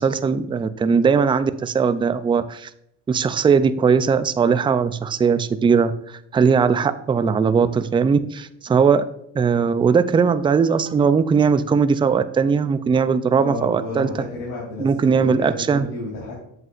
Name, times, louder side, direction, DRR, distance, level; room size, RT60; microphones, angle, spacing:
voice 1, 0.0-2.7 3.1-9.0 9.4-14.1 14.8-15.9, right 6 dB, 15° right, 12 dB, 0.3 m, -19 dB
voice 2, 13.4-16.4, left 2 dB, 75° left, -5 dB, 2.9 m, -31 dB
8.0 x 7.6 x 2.5 m, 0.76 s
cardioid pair, 105°, 34 cm